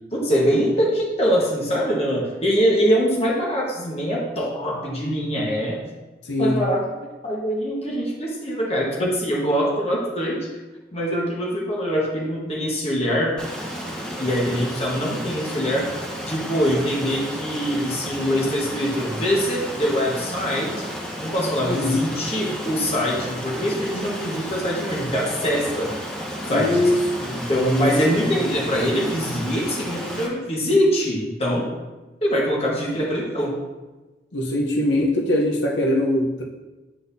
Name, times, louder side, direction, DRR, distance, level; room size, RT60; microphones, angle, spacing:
voice 1, 0.1-5.8 6.4-6.9 7.2-10.4 10.9-13.4 14.2-20.7 21.2-25.9 26.5-26.9 27.3-31.7 32.2-33.6, equal, 35° left, -3 dB, 1.3 m, -23 dB
voice 2, 6.2-6.6 21.7-22.0 26.5-27.9 28.2-28.3 34.3-36.4, left 1 dB, 80° left, -1 dB, 0.8 m, -22 dB
Stream, 13.4-30.3, equal, 5° left, 0.9 m, -32 dB
10.0 x 4.0 x 2.7 m, 1.2 s
head